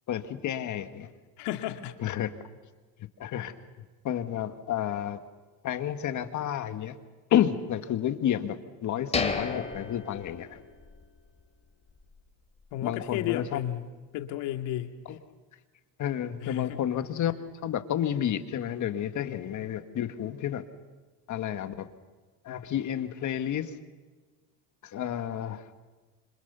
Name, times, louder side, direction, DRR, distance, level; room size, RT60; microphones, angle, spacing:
voice 1, 0.1-1.1 2.0-2.3 3.2-3.5 4.0-5.2 5.6-7.0 7.3-10.6 12.8-13.6 15.1-15.2 16.0-17.3 17.6-20.6 21.3-21.9 22.4-23.7 24.8-25.7, left 10 dB, 45° left, 9 dB, 1.7 m, -30 dB
voice 2, 1.4-1.9 12.7-13.8 14.1-15.2 16.4-16.8, left 12 dB, 80° left, 6 dB, 2.3 m, -33 dB
sound 1, 9.1-11.1 11.4-11.5 12.0-12.2, left 4 dB, 15° left, 2.8 m, -33 dB
27.0 x 26.5 x 6.9 m, 1.3 s
cardioid pair, 135°, 41 cm